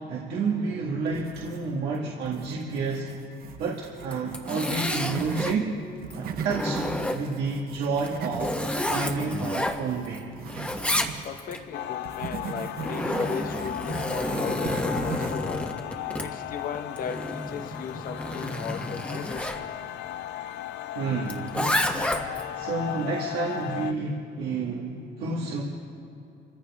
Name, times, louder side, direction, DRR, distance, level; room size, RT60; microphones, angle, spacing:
voice 1, 0.1-3.1 3.6-5.7 6.1-6.8 7.1-8.6 8.8-10.2 20.9-21.9 22.5-25.6, right 4 dB, 80° right, -3 dB, 1.9 m, -30 dB
sound 1, 1.1-1.9 2.2-5.6 6.0-11.3 12.0-15.5, right 7 dB, 60° right, 1.0 m, -39 dB
Zipper (clothing), 4.0-5.6 6.1-7.5 8.0-10.2 10.5-11.6 12.5-19.6 21.3-22.5, left 1 dB, 5° left, 1.4 m, -30 dB
voice 2, 11.2-15.7 16.2-19.7, left 6 dB, 55° left, 6 dB, 1.2 m, -37 dB
sound 2, 11.7-23.9, left 13 dB, 80° left, 0.5 m, -36 dB
26.0 x 15.0 x 3.6 m, 2.8 s
cardioid pair, 110°, 17 cm